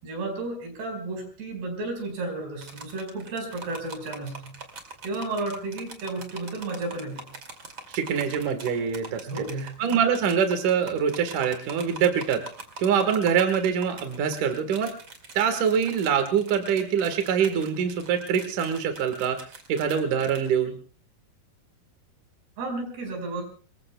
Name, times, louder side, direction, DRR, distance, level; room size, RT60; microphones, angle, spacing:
voice 1, 0.0-4.6 5.0-7.3 9.3-9.8 22.6-23.4, right 2 dB, 75° right, 4 dB, 7.1 m, -33 dB
sound 1, 2.6-20.5, right 3 dB, 35° right, 2.8 m, -43 dB
voice 2, 7.9-9.3 9.8-12.4 12.8-14.9 15.3-19.4 19.7-20.8, right 7 dB, 60° right, 6 dB, 2.8 m, -24 dB
27.0 x 22.0 x 2.3 m, 0.40 s
omnidirectional pair, 4.6 m